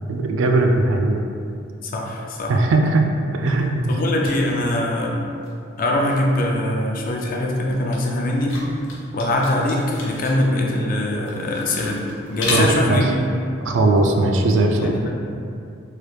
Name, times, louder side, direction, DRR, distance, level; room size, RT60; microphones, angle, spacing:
voice 1, 0.1-1.2 2.5-3.1 3.3-3.9 12.5-13.0 13.6-15.0, right 2 dB, 80° right, 3 dB, 0.3 m, -19 dB
voice 2, 1.8-2.5 3.9-5.2 5.8-8.6 9.1-13.0 14.8-15.2, left 1 dB, 45° left, -1 dB, 0.4 m, -22 dB
sound 1, 3.5-5.2 5.4-14.2, left 2 dB, 90° left, 0.6 m, -34 dB
3.2 x 2.4 x 3.1 m, 2.5 s
head